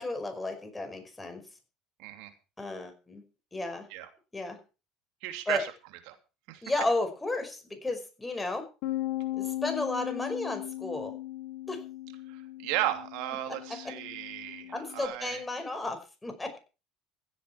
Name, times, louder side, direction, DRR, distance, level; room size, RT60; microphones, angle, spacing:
voice 1, 0.0-1.4 2.6-3.2 3.5-3.9 4.3-4.6 5.5-5.6 6.6-8.7 9.4-11.2 11.7-11.8 13.5-13.6 14.7-16.6, left 2 dB, 15° left, 6 dB, 5.4 m, -33 dB
voice 2, 2.0-2.3 3.9-4.1 5.2-5.7 6.1-6.2 6.5-6.6 12.3-15.4, right 14 dB, 70° right, 7 dB, 2.9 m, -34 dB
Bass guitar, 8.8-15.1, left 15 dB, 70° left, 1.9 m, -37 dB
16.0 x 8.3 x 6.0 m, 0.33 s
supercardioid pair, 85°, 0 cm